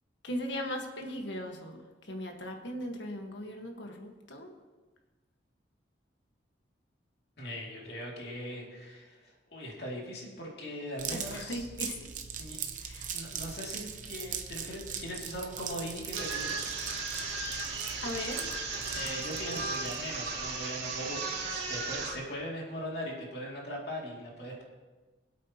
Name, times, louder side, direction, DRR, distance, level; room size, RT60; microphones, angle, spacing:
voice 1, 0.2-4.5 11.1-12.1 12.8-13.1 18.0-18.5, left 1 dB, 80° left, 3 dB, 1.5 m, -38 dB
voice 2, 7.4-11.7 12.4-12.6 13.1-16.6 18.9-24.6, equal, 60° left, -3 dB, 2.7 m, -40 dB
sound 1, 11.0-20.2, right 7 dB, 45° right, 0.8 m, -41 dB
sound 2, 16.1-22.1, right 3 dB, 70° right, 2.2 m, -36 dB
24.0 x 8.4 x 3.0 m, 1.3 s
head